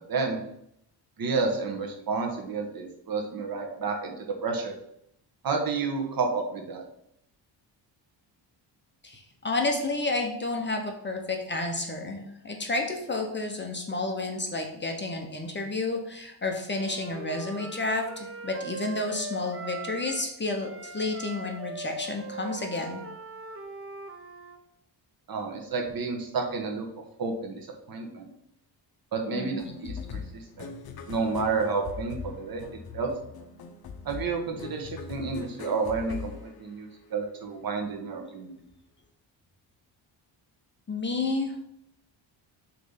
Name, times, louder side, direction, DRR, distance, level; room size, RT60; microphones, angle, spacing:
voice 1, 1.2-4.7 5.4-6.8 25.3-26.8 27.2-27.6 27.9-28.3 29.1-30.0 30.3-30.7 31.1-32.6 32.9-33.1 34.0-38.6, right 4 dB, 50° right, 2 dB, 1.4 m, -30 dB
voice 2, 9.0-23.0 29.3-29.6 40.9-41.5, left 2 dB, 25° left, 2 dB, 0.9 m, -31 dB
Wind instrument woodwind instrument, 16.6-20.3 20.6-24.6, right 3 dB, 30° right, 0.7 m, -40 dB
sound 1, 29.6-37.2, left 6 dB, 55° left, 0.8 m, -41 dB
6.7 x 3.3 x 5.8 m, 0.75 s
cardioid pair, 135°, 45 cm